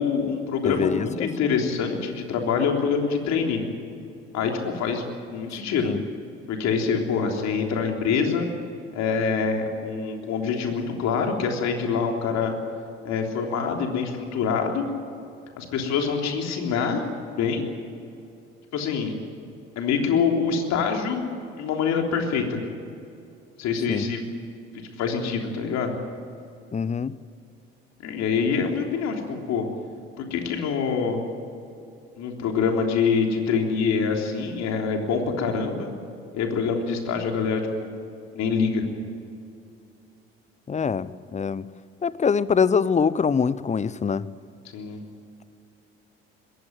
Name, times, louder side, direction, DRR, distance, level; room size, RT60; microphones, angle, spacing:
voice 1, 0.0-3.6 4.3-5.0 5.3-5.9 6.5-8.5 8.9-12.5 13.0-14.9 15.6-17.0 17.4-17.7 18.7-19.1 19.8-21.2 21.6-22.6 23.6-24.2 25.0-26.0 28.0-29.7 30.2-31.2 32.2-35.9 36.3-37.9 38.3-38.8 44.7-45.0, left 5 dB, 60° left, 2 dB, 3.5 m, -25 dB
voice 2, 0.6-1.5 5.9-6.0 23.9-24.1 26.7-27.1 40.7-41.6 42.0-44.3, left 6 dB, 20° left, 18 dB, 0.8 m, -24 dB
21.5 x 17.0 x 9.3 m, 2.6 s
hypercardioid pair, 55°, 31 cm